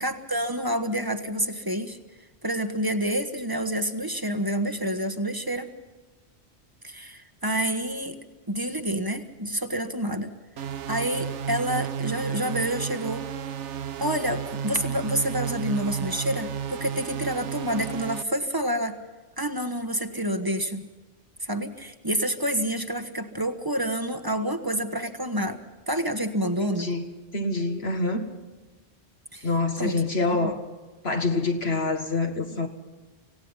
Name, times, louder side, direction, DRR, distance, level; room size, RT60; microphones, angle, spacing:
voice 1, 0.0-2.0 2.4-5.7 6.8-10.3 10.9-13.3 14.0-19.0 19.4-20.8 21.4-25.6 25.9-26.9 29.3-29.5 29.8-30.0 30.3-30.6, right 1 dB, 20° right, 1.3 m, -28 dB
sound 1, 10.6-18.2, right 8 dB, 80° right, 1.1 m, -32 dB
voice 2, 26.6-27.0 27.3-28.2 29.4-30.6 31.0-32.7, left 3 dB, 60° left, 2.0 m, -26 dB
26.5 x 17.5 x 5.6 m
omnidirectional pair, 1.2 m